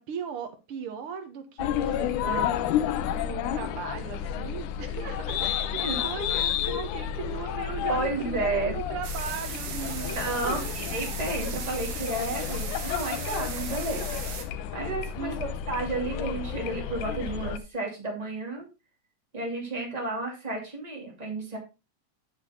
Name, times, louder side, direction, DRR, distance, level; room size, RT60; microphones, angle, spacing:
voice 1, 0.0-2.8 3.2-10.7 11.3-11.4 15.2-15.5, right 6 dB, 55° right, 7 dB, 1.8 m, -38 dB
sound 1, 1.6-17.6, left 9 dB, 80° left, 2.1 m, -31 dB
voice 2, 1.9-2.6 5.9-6.0 7.9-8.8 10.1-14.1 14.7-15.3 15.7-18.6 19.3-21.6, right 2 dB, 15° right, 0 dB, 2.6 m, -32 dB
sound 2, 9.0-14.4, right 7 dB, 85° right, 2.9 m, -38 dB
8.7 x 7.2 x 3.7 m, 0.27 s
omnidirectional pair, 3.5 m